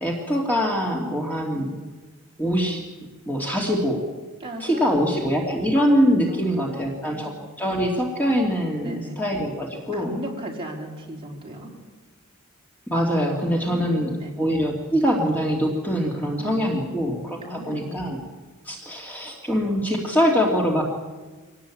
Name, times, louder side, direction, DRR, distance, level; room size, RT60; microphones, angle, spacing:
voice 1, 0.0-1.7 2.4-2.8 3.3-4.1 4.6-10.1 12.9-14.1 14.4-18.2 18.7-20.8, equal, 10° left, -1 dB, 2.8 m, -23 dB
voice 2, 4.4-5.2 6.2-7.3 8.8-9.2 9.9-11.7 13.6-14.4 16.4-18.2, right 1 dB, 25° right, -1 dB, 4.6 m, -37 dB
25.5 x 18.5 x 8.7 m, 1.3 s
head